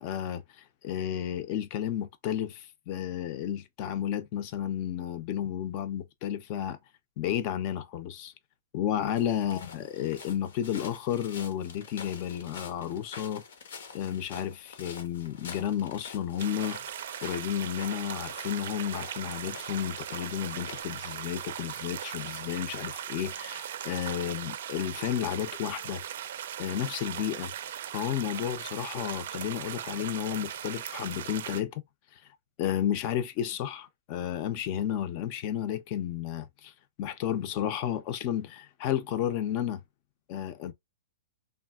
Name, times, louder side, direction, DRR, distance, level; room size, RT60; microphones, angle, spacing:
voice 1, 0.0-6.8 7.2-8.3 8.7-13.4 13.9-16.8 17.2-26.0 26.6-27.5 27.9-31.8 32.6-36.7 37.0-39.8 40.3-40.7, left 10 dB, 40° left, 0.5 m, -32 dB
sound 1, 9.2-20.8, left 5 dB, 75° left, 0.9 m, -47 dB
sound 2, 16.4-31.6, right 10 dB, 65° right, 0.4 m, -39 dB
3.4 x 2.3 x 2.3 m
hypercardioid pair, 150°, 0 cm